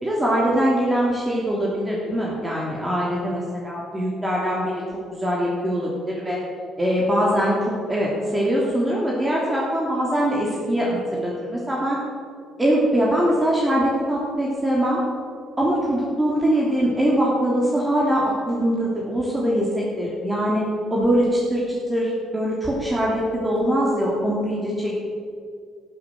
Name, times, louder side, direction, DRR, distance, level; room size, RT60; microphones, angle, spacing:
voice 1, 0.0-4.7 5.2-6.4 6.8-12.0 12.6-15.0 15.6-19.6 20.0-20.6 20.9-25.0, equal, 20° right, -4 dB, 3.0 m, -22 dB
13.0 x 7.2 x 7.6 m, 2.2 s
hypercardioid pair, 50°, 0 cm